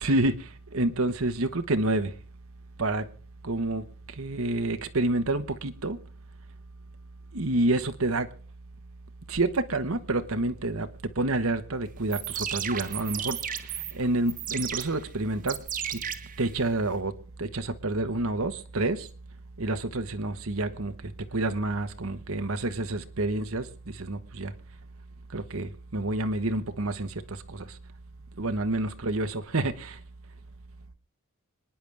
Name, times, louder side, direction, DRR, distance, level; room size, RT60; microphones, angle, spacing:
voice 1, 0.0-2.1 2.8-3.0 3.4-3.8 4.2-6.0 7.3-8.3 9.3-10.9 11.1-13.6 13.9-15.6 15.9-16.0 16.4-17.1 17.4-19.1 19.6-20.9 21.3-24.5 25.3-27.8 28.4-30.0, right 2 dB, 70° right, 1.3 m, -28 dB
sound 1, 12.0-17.0, right 9 dB, 40° right, 1.3 m, -35 dB
26.5 x 10.0 x 3.5 m
head